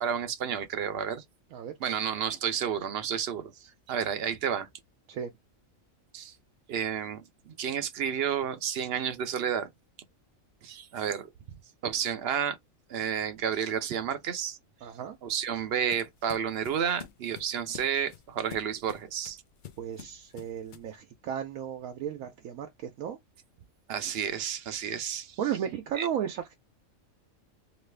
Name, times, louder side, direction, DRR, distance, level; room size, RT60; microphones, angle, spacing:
voice 1, 0.0-1.2 1.8-4.7 6.1-6.4 6.7-9.7 10.6-11.3 11.8-12.6 12.9-14.6 15.2-19.4 23.9-25.4 25.9-26.1, right 8 dB, 60° right, 0.7 m, -31 dB
voice 2, 14.8-15.2 19.8-23.2 25.4-26.5, right 9 dB, 85° right, 1.0 m, -34 dB
sound 1, 14.9-21.0, left 9 dB, 65° left, 0.5 m, -49 dB
3.1 x 2.4 x 3.2 m
omnidirectional pair, 1.4 m